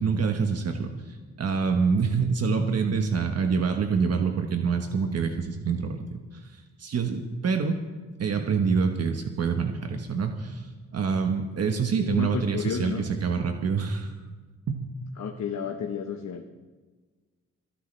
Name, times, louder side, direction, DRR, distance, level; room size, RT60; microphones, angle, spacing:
voice 1, 0.0-6.0 6.4-7.8 8.2-14.1 14.7-14.9, right 5 dB, 55° right, 4 dB, 1.3 m, -26 dB
voice 2, 12.0-13.0 15.2-16.4, left 7 dB, 70° left, 3 dB, 1.2 m, -31 dB
29.5 x 10.0 x 3.4 m, 1.3 s
cardioid pair, 90°, 29 cm